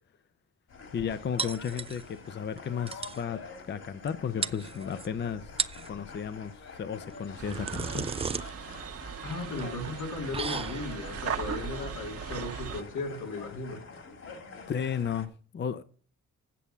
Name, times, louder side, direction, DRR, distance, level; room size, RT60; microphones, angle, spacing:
sound 1, 0.7-15.3, left 4 dB, 55° left, 2.8 m, -47 dB
voice 1, 0.9-5.5 5.9-8.1 14.7-15.8, left 7 dB, 35° left, 0.7 m, -34 dB
sound 2, 1.4-2.3 2.6-2.7 2.9-3.2 4.1-4.2 4.4-5.1 5.5-5.9 7.1-13.7, right 5 dB, 20° right, 0.4 m, -36 dB
sound 3, 7.4-12.8, right 7 dB, 50° right, 1.2 m, -38 dB
voice 2, 9.2-13.8, left 3 dB, 85° left, 2.6 m, -36 dB
8.5 x 7.0 x 6.8 m
cardioid pair, 90°, 30 cm